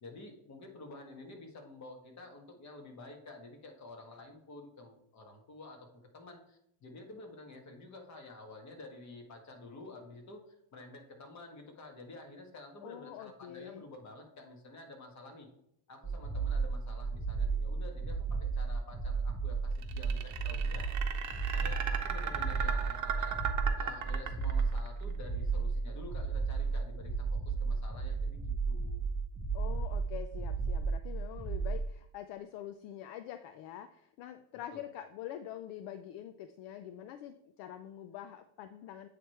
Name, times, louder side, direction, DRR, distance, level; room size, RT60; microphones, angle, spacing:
voice 1, 0.0-5.9 6.1-10.4 10.7-15.5 15.9-20.9 21.5-23.4 23.8-29.0 34.7-34.8, left 2 dB, 40° left, 3 dB, 1.7 m, -50 dB
voice 2, 12.8-13.8 29.5-39.1, left 11 dB, 70° left, 10 dB, 0.5 m, -45 dB
sound 1, 16.0-31.9, right 4 dB, 5° right, 0.5 m, -34 dB
sound 2, 19.8-24.9, right 8 dB, 40° right, 0.9 m, -36 dB
8.6 x 3.3 x 4.4 m, 0.75 s
supercardioid pair, 115°, 44 cm